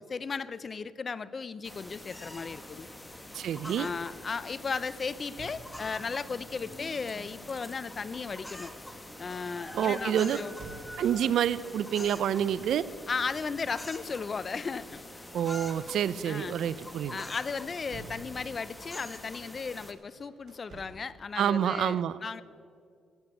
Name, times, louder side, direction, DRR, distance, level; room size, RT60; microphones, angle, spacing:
voice 1, 0.0-2.9 3.8-8.7 9.2-10.6 13.1-15.0 16.2-16.6 17.1-22.4, left 5 dB, 40° left, 17 dB, 0.6 m, -35 dB
sound 1, 1.6-19.9, left 1 dB, 10° left, 1.4 m, -45 dB
voice 2, 3.3-3.9 9.7-10.4 11.0-12.8 15.3-17.2 21.4-22.2, right 9 dB, 70° right, 18 dB, 0.5 m, -28 dB
sound 2, 5.2-6.2 7.2-11.4 12.4-12.8 13.1-15.4 15.8-16.0 16.4-18.8 19.7-21.2, right 4 dB, 55° right, 3.5 m, -54 dB
16.0 x 7.8 x 8.9 m, 2.2 s
cardioid pair, 90°, 0 cm